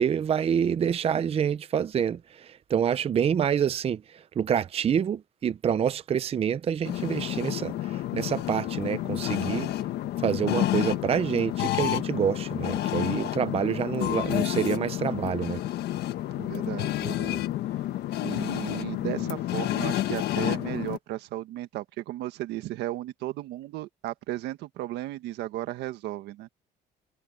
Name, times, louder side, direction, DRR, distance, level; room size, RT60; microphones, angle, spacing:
voice 1, 0.0-9.7 10.2-15.6, right 8 dB, 35° right, 0.6 m, -27 dB
sound 1, 6.8-21.0, left 14 dB, 75° left, 1.4 m, -30 dB
voice 2, 16.3-17.5 18.2-26.5, right 15 dB, 85° right, 1.6 m, -35 dB
cardioid pair, 110°, 17 cm